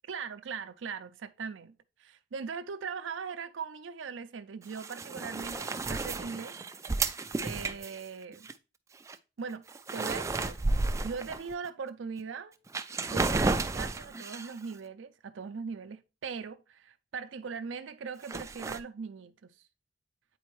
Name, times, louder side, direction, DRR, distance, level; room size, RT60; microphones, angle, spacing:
voice 1, 0.1-1.7 2.0-6.6 7.4-8.5 9.4-10.6 11.0-12.5 13.0-19.6, right 5 dB, 85° right, 0.5 m, -40 dB
sound 1, 4.6-8.5 9.0-9.2 9.5-11.7 12.2-12.3 12.7-14.6 18.2-18.8, right 3 dB, 15° right, 0.3 m, -32 dB
8.3 x 4.2 x 3.1 m
head